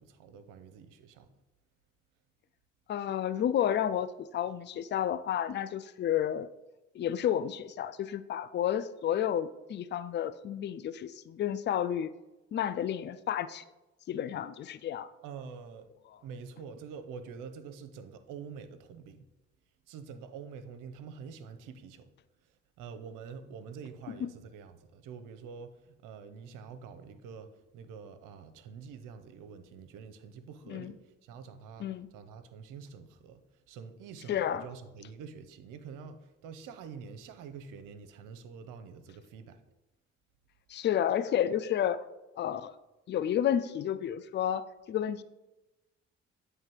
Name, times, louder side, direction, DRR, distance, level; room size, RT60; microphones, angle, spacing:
voice 1, 0.0-1.4 15.2-15.9 16.2-19.3 19.9-22.1 22.4-39.6, right 6 dB, 65° right, 0.7 m, -47 dB
voice 2, 2.9-6.5 6.9-12.1 12.5-13.6 14.1-15.1 30.7-30.9 31.8-32.1 34.3-34.6 40.7-42.0 42.4-42.7 43.1-45.2, left 10 dB, 35° left, 0.4 m, -31 dB
8.8 x 3.2 x 4.6 m
hypercardioid pair, 45°, 34 cm